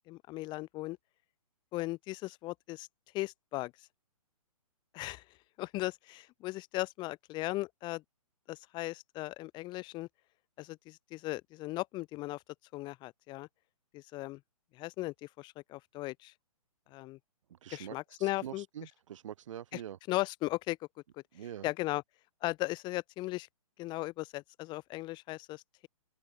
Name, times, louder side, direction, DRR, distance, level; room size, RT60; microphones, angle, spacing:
voice 1, 0.1-1.0 1.7-2.9 3.1-3.7 4.9-5.2 5.6-8.0 8.5-10.1 10.6-12.4 12.7-13.5 13.9-14.4 14.7-16.3 16.9-17.2 17.7-18.6 19.7-19.8 20.1-20.8 21.6-22.0 22.4-23.5 23.8-25.9, left 19 dB, 25° left, 2.1 m, -37 dB
voice 2, 17.5-20.0 21.3-21.7, right 10 dB, 55° right, 6.2 m, -45 dB
hypercardioid pair, 140°, 19 cm